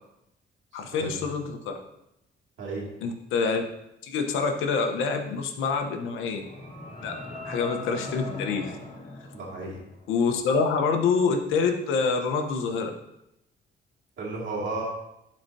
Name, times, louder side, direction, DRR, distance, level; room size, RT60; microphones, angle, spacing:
voice 1, 0.7-1.8 3.0-3.6 4.0-6.4 7.0-7.1 7.4-8.8 10.1-12.9, left 5 dB, 90° left, 4 dB, 1.0 m, -26 dB
sound 1, 6.0-10.2, left 2 dB, 30° left, 2.9 m, -39 dB
voice 2, 9.3-9.8 14.2-14.8, right 3 dB, 75° right, -4 dB, 2.3 m, -33 dB
12.0 x 4.4 x 2.7 m, 0.83 s
cardioid pair, 90°, 20 cm